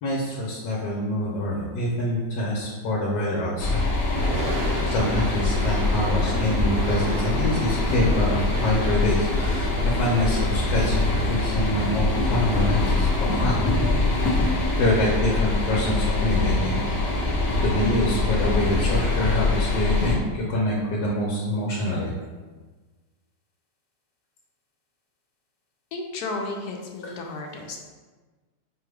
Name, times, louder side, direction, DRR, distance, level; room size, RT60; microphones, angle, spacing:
voice 1, 0.0-3.8 4.9-13.6 14.8-16.8 17.6-22.1, left 1 dB, 90° left, -3 dB, 1.3 m, -25 dB
sound 1, 3.6-20.1, left 3 dB, 55° left, 0.8 m, -24 dB
Thunder / Rain, 4.0-20.3, right 3 dB, 80° right, 1.2 m, -35 dB
sound 2, 5.1-14.9, right 2 dB, 65° right, 0.9 m, -39 dB
voice 2, 25.9-27.8, left 3 dB, 70° left, 2 dB, 1.1 m, -33 dB
5.0 x 2.3 x 3.2 m, 1.3 s
omnidirectional pair, 1.9 m